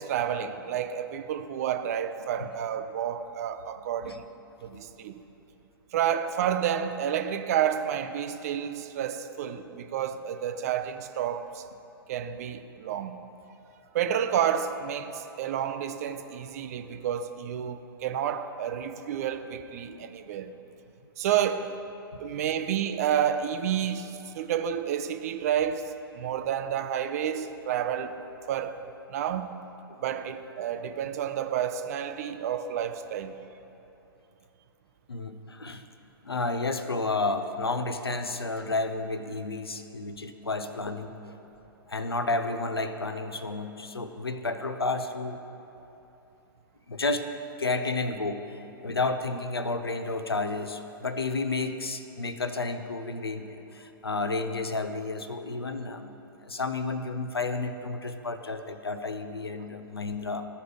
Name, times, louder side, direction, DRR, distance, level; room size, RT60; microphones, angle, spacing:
voice 1, 0.0-4.2 4.6-5.2 5.9-11.6 12.1-13.2 13.9-20.5 21.2-21.8 22.2-28.2 28.5-28.8 29.1-29.5 30.0-33.3, right 9 dB, 40° right, 0.5 m, -30 dB
voice 2, 35.1-35.8 36.2-41.3 41.9-45.4 46.9-47.3 47.6-48.4 48.8-60.5, left 3 dB, 80° left, 0.6 m, -31 dB
15.0 x 5.0 x 3.3 m
figure-of-eight pair, 110°, 13 cm